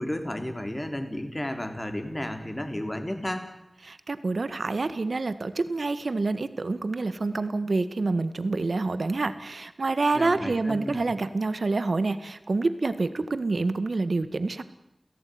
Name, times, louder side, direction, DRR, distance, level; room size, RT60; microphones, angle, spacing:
voice 1, 0.0-3.5 10.1-11.0, left 1 dB, 25° left, 6 dB, 4.0 m, -33 dB
voice 2, 3.8-14.6, right 3 dB, 85° right, 12 dB, 1.8 m, -27 dB
29.0 x 17.0 x 9.6 m, 0.85 s
wide cardioid pair, 60°, 0 cm